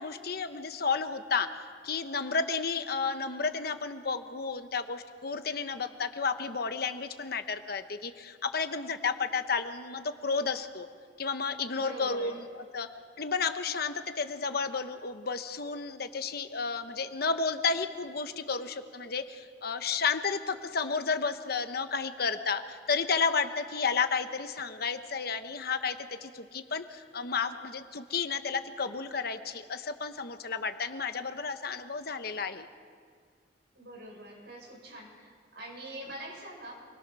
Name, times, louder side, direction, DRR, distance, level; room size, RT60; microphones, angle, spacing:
voice 1, 0.0-1.5 1.8-10.9 11.2-12.9 13.2-32.7, left 5 dB, 55° left, 9 dB, 1.1 m, -32 dB
voice 2, 11.7-12.4 33.7-36.7, right 1 dB, 65° right, -1 dB, 6.8 m, -44 dB
28.0 x 21.5 x 6.3 m, 2.1 s
head